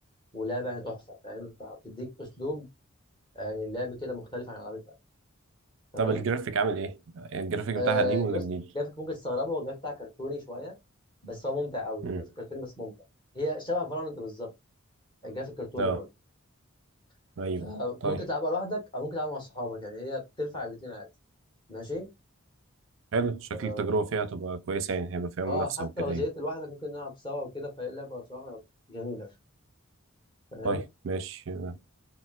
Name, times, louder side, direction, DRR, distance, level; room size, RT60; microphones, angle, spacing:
voice 1, 0.3-2.7 3.3-4.8 5.9-6.2 7.7-8.4 8.7-10.7 11.2-12.9 13.3-14.5 15.2-16.1 17.6-21.1 21.7-22.1 23.5-24.0 25.4-28.6 28.9-29.3 30.5-30.8, left 1 dB, 25° left, 1.2 m, -34 dB
voice 2, 6.0-8.6 12.0-12.2 15.8-16.0 17.4-17.7 18.0-18.2 23.1-26.2 30.6-31.8, right 4 dB, 65° right, 0.4 m, -30 dB
4.2 x 2.0 x 2.3 m
head